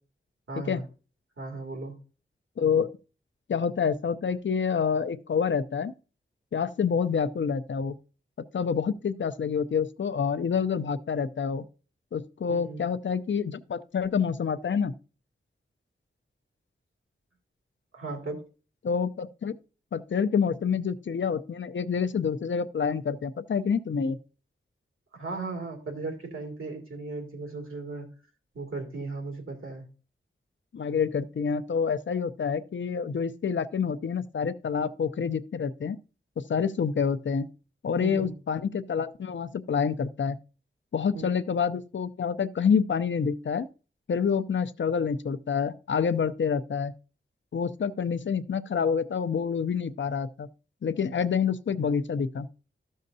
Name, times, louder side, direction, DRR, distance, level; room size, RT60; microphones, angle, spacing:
voice 1, 0.5-0.9 1.4-1.9 12.5-12.8 17.9-18.4 25.1-28.1 28.5-29.9 38.0-38.3 41.1-41.3, right 3 dB, 85° right, 2.3 m, -36 dB
voice 2, 2.6-3.0 3.5-5.9 6.5-7.9 8.5-11.7 12.1-14.9 18.8-19.6 19.9-24.2 30.7-36.0 36.4-37.5 37.8-40.4 40.9-43.7 44.1-46.9 47.5-50.5 50.8-52.5, left 6 dB, 65° left, 0.6 m, -27 dB
13.5 x 6.4 x 2.7 m
wide cardioid pair, 90°, 21 cm